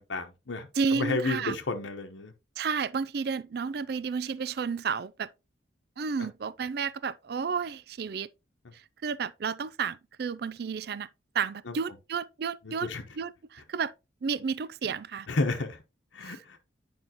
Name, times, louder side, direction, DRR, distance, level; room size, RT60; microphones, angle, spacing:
voice 1, 0.0-2.3 6.2-6.3 11.7-11.8 12.6-13.0 15.3-15.8 16.1-16.6, left 3 dB, 85° left, 1.0 m, -32 dB
voice 2, 0.8-1.6 2.6-5.3 6.0-8.3 9.0-11.1 11.3-12.9 13.2-13.9 14.2-15.3 16.2-16.6, right 5 dB, 55° right, 0.4 m, -31 dB
9.2 x 5.4 x 2.9 m
head